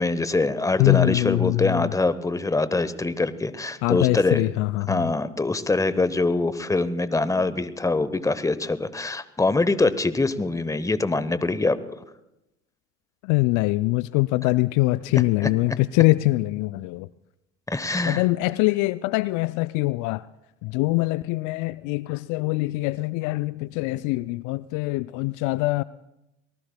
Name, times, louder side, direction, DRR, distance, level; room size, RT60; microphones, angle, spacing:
voice 1, 0.0-4.4 4.9-11.8 15.1-15.5 17.7-18.2, left 3 dB, 10° left, 0.9 m, -24 dB
voice 2, 0.8-1.9 3.8-5.1 13.2-17.1 18.1-20.2 20.6-25.8, left 20 dB, 55° left, 0.4 m, -23 dB
24.5 x 19.0 x 2.2 m
hypercardioid pair, 60°, 36 cm